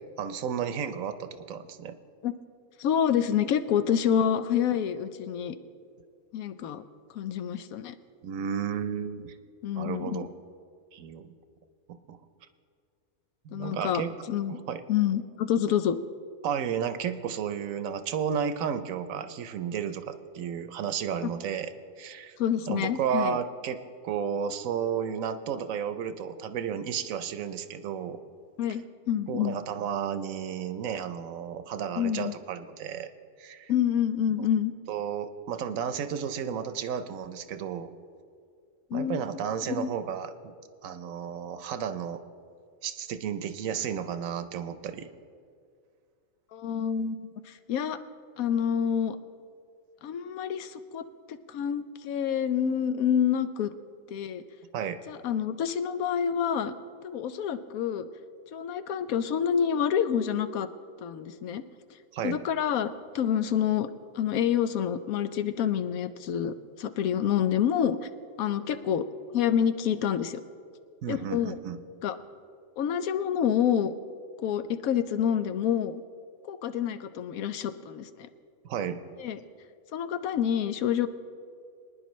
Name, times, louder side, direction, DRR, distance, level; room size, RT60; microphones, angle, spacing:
voice 1, 0.2-2.0 8.2-9.3 9.8-10.3 10.9-11.3 12.1-12.2 13.4-14.1 14.5-14.8 16.4-21.7 22.0-22.3 22.7-23.8 24.0-28.2 29.3-33.1 33.4-33.7 34.9-37.9 38.9-40.5 40.8-42.2 42.8-45.1 54.7-55.0 62.1-62.4 71.0-71.8 78.6-79.0, right 8 dB, 75° right, 10 dB, 1.1 m, -32 dB
voice 2, 2.8-5.5 6.3-6.8 7.1-8.0 9.6-10.3 13.5-14.0 14.3-14.5 14.9-16.0 22.4-23.4 28.6-29.6 32.0-32.3 33.7-34.7 38.9-39.4 39.7-39.9 46.5-48.0 48.4-49.2 50.0-53.7 54.1-54.4 55.1-56.7 57.0-58.1 58.5-60.7 61.0-61.6 62.2-62.9 63.1-63.9 64.1-68.0 68.4-69.1 69.3-70.4 71.1-71.6 72.0-72.2 72.8-73.9 74.4-76.0 76.4-78.3 79.2-79.4 79.9-81.1, left 9 dB, 90° left, 11 dB, 1.1 m, -27 dB
23.5 x 10.0 x 3.1 m, 2.3 s
omnidirectional pair, 1.4 m